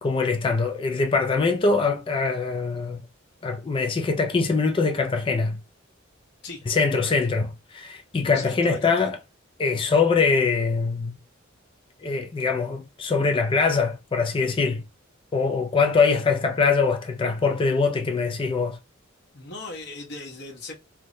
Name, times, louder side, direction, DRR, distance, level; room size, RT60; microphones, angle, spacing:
voice 1, 0.0-3.0 3.4-5.6 6.7-9.2 9.6-11.2 12.0-14.8 15.3-18.8, left 4 dB, 25° left, 0.3 m, -23 dB
voice 2, 8.3-9.1 19.3-20.7, left 1 dB, 60° left, 0.9 m, -37 dB
3.2 x 2.1 x 2.6 m
head